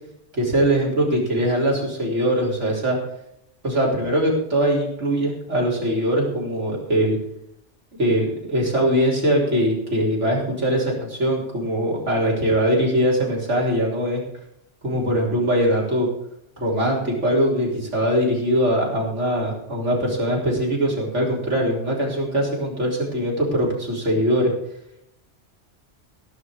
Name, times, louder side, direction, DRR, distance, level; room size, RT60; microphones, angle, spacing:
voice 1, 0.3-3.0 3.6-7.2 8.0-14.2 14.8-16.1 16.6-24.5, equal, 75° right, -3 dB, 4.3 m, -21 dB
16.5 x 6.3 x 6.5 m, 0.78 s
omnidirectional pair, 1.2 m